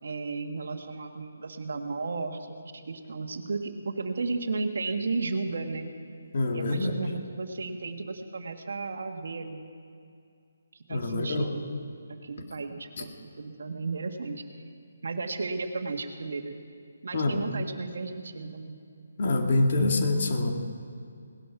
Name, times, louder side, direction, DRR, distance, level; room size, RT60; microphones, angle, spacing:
voice 1, 0.0-5.9 6.5-9.7 10.7-11.7 12.1-14.4 15.0-16.5 17.0-18.8, right 3 dB, 65° right, 6 dB, 1.5 m, -34 dB
voice 2, 6.3-7.0 10.9-11.5 13.0-13.1 17.1-17.4 19.2-20.5, left 2 dB, 45° left, 3 dB, 2.0 m, -25 dB
18.0 x 11.5 x 5.9 m, 2.4 s
hypercardioid pair, 170°, 0 cm